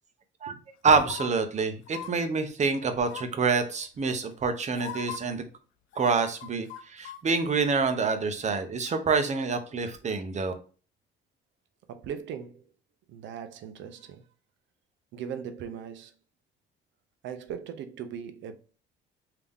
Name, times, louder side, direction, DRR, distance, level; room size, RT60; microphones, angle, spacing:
voice 1, 0.8-5.5 6.0-10.5, right 4 dB, 35° right, 0.8 m, -27 dB
sound 1, 0.9-1.3 1.9-2.1 3.0-3.4 4.3-4.4 4.7-5.2 5.9-7.2 7.5-7.6, left 9 dB, 80° left, 0.6 m, -39 dB
voice 2, 11.9-12.7 13.1-14.3 15.1-16.1 17.2-18.5, right 8 dB, 75° right, 0.7 m, -39 dB
3.5 x 2.9 x 3.5 m
cardioid pair, 100°, 20 cm